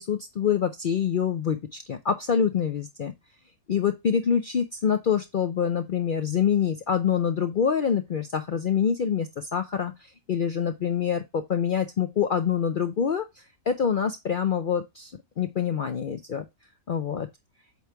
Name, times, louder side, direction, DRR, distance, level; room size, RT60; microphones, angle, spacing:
voice 1, 0.0-3.1 3.7-15.1 15.4-16.4 16.9-17.3, left 7 dB, 65° left, 7 dB, 0.5 m, -26 dB
8.2 x 3.1 x 4.4 m, 0.22 s
omnidirectional pair, 1.5 m